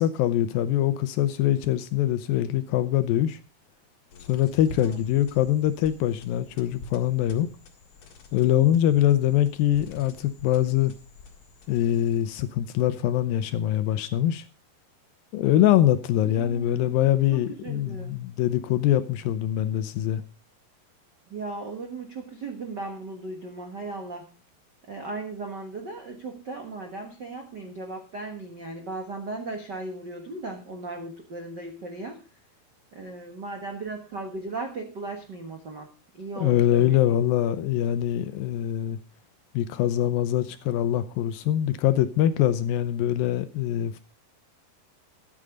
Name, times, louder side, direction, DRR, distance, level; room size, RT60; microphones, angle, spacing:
voice 1, 0.0-3.4 4.2-7.5 8.3-10.9 11.7-14.4 15.3-20.2 36.4-39.0 39.5-44.0, left 12 dB, 80° left, 2.2 m, -23 dB
sound 1, 4.1-12.5, left 2 dB, 50° left, 2.5 m, -47 dB
voice 2, 16.2-17.0 17.3-18.2 21.3-24.3 24.9-32.2 32.9-37.2, right 3 dB, 70° right, 1.0 m, -37 dB
13.5 x 8.7 x 5.0 m
omnidirectional pair, 4.6 m